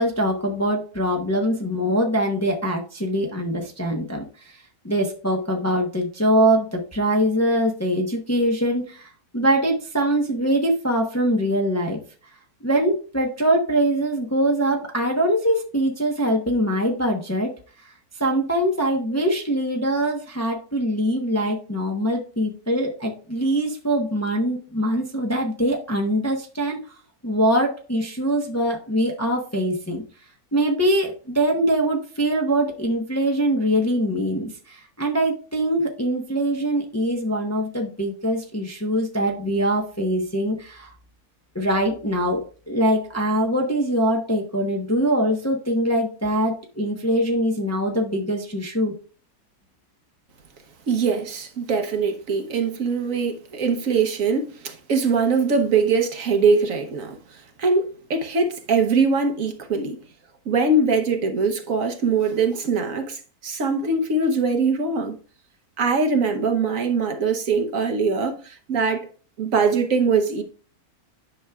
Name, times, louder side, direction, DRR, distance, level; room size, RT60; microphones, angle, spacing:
voice 1, 0.0-4.6 4.8-12.0 12.6-17.5 18.2-26.8 27.2-30.0 30.5-40.9 41.5-49.0, right 1 dB, 15° left, 0.7 m, -23 dB
voice 2, 50.9-57.2 57.6-60.0 60.5-65.2 65.8-69.1 69.4-70.4, right 4 dB, 60° right, 1.3 m, -22 dB
10.0 x 6.2 x 2.3 m
omnidirectional pair, 1.6 m